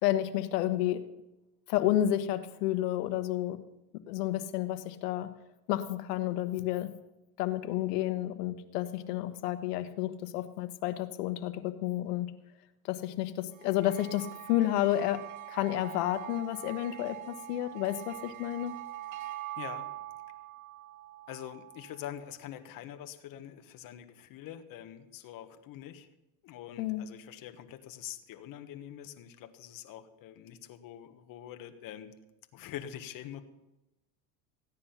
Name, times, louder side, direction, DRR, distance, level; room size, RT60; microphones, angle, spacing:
voice 1, 0.0-1.0 1.7-3.6 4.1-5.3 5.7-6.9 7.4-12.3 12.8-18.8 26.8-27.1, left 13 dB, 80° left, 11 dB, 1.3 m, -31 dB
sound 1, 13.5-22.2, right 15 dB, 40° right, 1.1 m, -44 dB
voice 2, 19.6-19.9 21.3-26.1 26.4-32.1 32.5-33.4, left 11 dB, 45° left, 8 dB, 1.3 m, -45 dB
14.5 x 9.8 x 5.7 m, 0.96 s
supercardioid pair, 120°, 46 cm